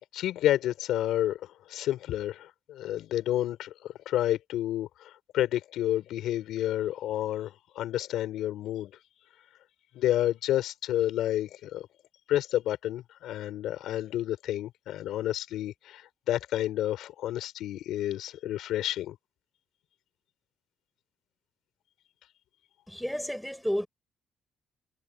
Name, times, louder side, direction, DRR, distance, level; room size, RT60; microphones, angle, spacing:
voice 1, 0.1-8.9 9.9-11.9 12.3-19.2, left 13 dB, 85° left, 4.7 m, -30 dB
voice 2, 22.9-23.9, equal, 5° left, 4.5 m, -31 dB
cardioid pair, 90°, 0 cm